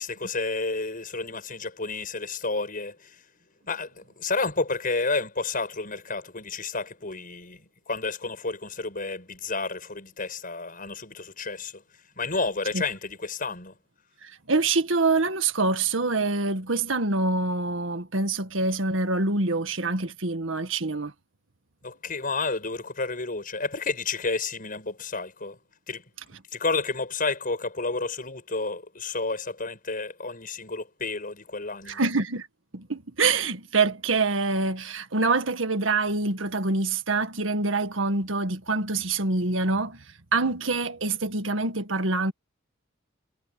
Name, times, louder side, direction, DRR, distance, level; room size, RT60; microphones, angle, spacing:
voice 1, 0.0-3.2 3.7-11.8 12.2-13.7 21.8-25.6 25.9-26.0 26.5-32.0, left 3 dB, 45° left, 6.9 m, -31 dB
voice 2, 14.2-21.1 31.9-32.5 32.7-40.0 40.3-42.3, right 3 dB, 90° right, 1.8 m, -25 dB
head